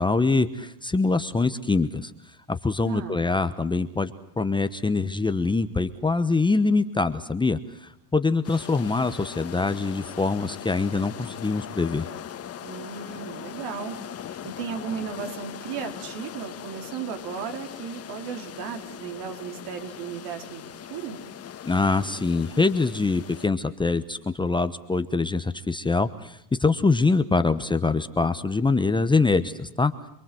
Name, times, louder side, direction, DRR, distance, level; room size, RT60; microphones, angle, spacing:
voice 1, 0.0-2.1 2.5-12.1 21.6-29.9, left 3 dB, 10° left, 10 dB, 1.1 m, -24 dB
voice 2, 2.8-3.3 12.6-14.0 14.3-21.2, right 7 dB, 65° right, 5 dB, 4.4 m, -35 dB
sound 1, 8.4-23.5, left 9 dB, 35° left, 1.7 m, -40 dB
27.5 x 22.5 x 7.8 m, 0.76 s
supercardioid pair, 115°, 44 cm